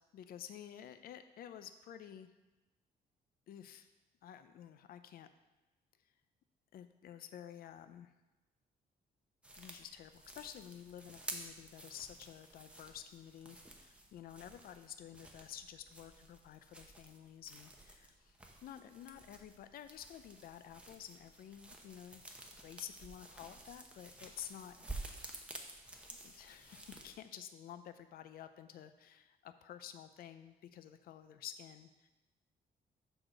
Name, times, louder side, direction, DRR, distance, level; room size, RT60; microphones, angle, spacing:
voice 1, 0.1-2.3 3.5-3.9 4.2-5.3 6.7-8.1 9.6-22.2 22.6-24.8 26.1-32.1, left 10 dB, 65° left, 10 dB, 0.5 m, -51 dB
sound 1, 9.4-27.2, right 1 dB, 5° right, 0.7 m, -52 dB
6.3 x 4.8 x 6.4 m, 1.1 s
cardioid pair, 170°, 17 cm